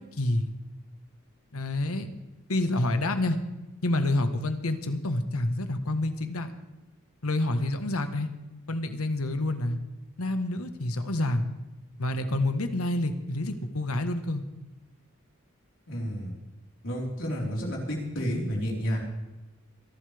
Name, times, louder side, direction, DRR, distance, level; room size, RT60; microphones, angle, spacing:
voice 1, 0.2-0.5 1.5-2.1 2.5-3.4 3.8-6.5 7.2-8.3 8.7-9.8 10.2-11.4 12.0-14.4, left 1 dB, 90° left, 8 dB, 1.4 m, -28 dB
voice 2, 15.9-16.3 16.8-19.0, equal, 60° left, -2 dB, 4.4 m, -30 dB
25.5 x 11.5 x 3.5 m, 1.0 s
head